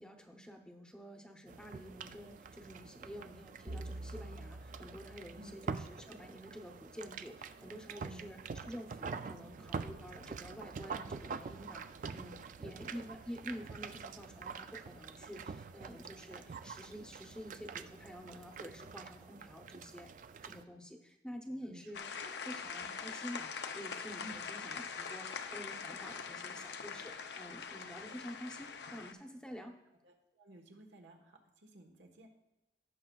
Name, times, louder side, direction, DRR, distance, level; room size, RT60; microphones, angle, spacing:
voice 1, 0.0-11.8 12.1-20.1 20.4-29.8, equal, 5° left, 3 dB, 0.7 m, -49 dB
sound 1, 1.5-20.6, right 5 dB, 45° right, 0.3 m, -46 dB
sound 2, 3.7-6.1, right 1 dB, 65° right, 0.7 m, -47 dB
voice 2, 7.9-8.6 9.3-9.4 12.6-12.7 21.7-22.1 22.5-22.6 24.2-24.4 30.0-32.3, right 1 dB, 85° right, 3 dB, 1.3 m, -55 dB
sound 3, 21.9-29.1, left 6 dB, 70° left, 0.6 m, -43 dB
16.0 x 6.1 x 2.3 m, 0.94 s
head